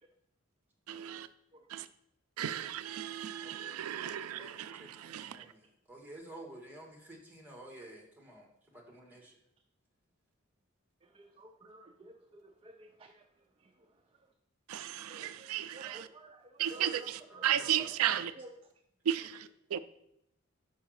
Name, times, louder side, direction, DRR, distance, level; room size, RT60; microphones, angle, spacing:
voice 1, 0.9-1.3 1.7-1.9 2.4-5.4 14.7-16.1 16.6-18.3 19.1-19.8, right 10 dB, 85° right, 0.4 m, -34 dB
voice 2, 3.4-4.1 5.1-5.2 11.1-13.2 13.6-13.7 14.9-17.7 18.0-18.5, right 1 dB, 25° right, 0.5 m, -53 dB
voice 3, 4.0-9.3 17.3-18.2, right 1 dB, 10° right, 1.5 m, -52 dB
5.6 x 5.0 x 6.3 m
head